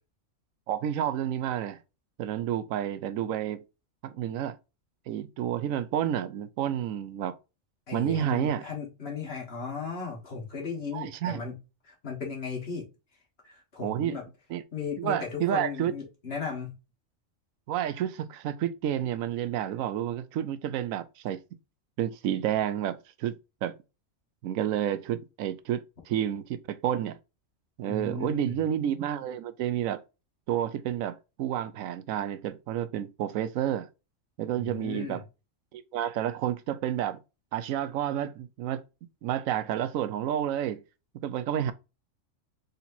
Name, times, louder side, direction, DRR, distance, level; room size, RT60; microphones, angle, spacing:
voice 1, 0.7-1.8 2.2-3.6 4.0-4.5 5.1-7.3 7.9-8.6 10.9-11.4 13.8-14.2 14.5-14.6 15.0-15.9 17.7-21.4 22.0-23.3 23.6-23.7 24.4-27.2 27.8-30.0 30.5-33.9 34.4-35.2 35.7-37.2 37.5-38.8 39.2-40.8 41.2-41.7, right 10 dB, 85° right, 1.0 m, -30 dB
voice 2, 7.9-11.5 11.8-12.8 13.4-14.2 14.7-16.7 27.9-28.6 34.5-35.2, left 5 dB, 50° left, 1.7 m, -36 dB
4.3 x 3.9 x 2.6 m
omnidirectional pair, 1.4 m